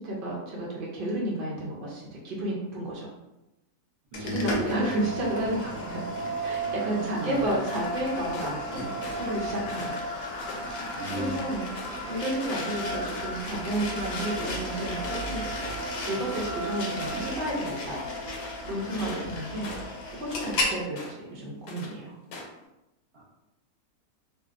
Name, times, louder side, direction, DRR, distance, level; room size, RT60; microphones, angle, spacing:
voice 1, 0.0-3.1 4.2-6.0 6.4-8.8 9.2-9.9 11.1-11.6 12.0-15.4 16.0-18.0 18.6-19.7 20.1-22.2, right 1 dB, 80° right, -4 dB, 0.5 m, -31 dB
sound 1, 4.1-20.8, equal, 70° left, 1.0 m, -33 dB
voice 2, 4.1-4.6 5.0-5.1 7.0-7.5 10.9-11.5 19.0-19.2 23.1-23.2, right 2 dB, 50° right, -4 dB, 0.8 m, -36 dB
sound 2, 7.7-8.6 9.0-9.4 9.7-11.4 11.7-12.1 12.4-12.6 12.9-16.7 17.0-17.9 18.2-19.3 19.6-20.6 21.0-21.3 21.7-21.9 22.3-22.6, left 2 dB, 90° left, 1.2 m, -43 dB
2.6 x 2.2 x 2.4 m, 0.96 s
omnidirectional pair, 1.6 m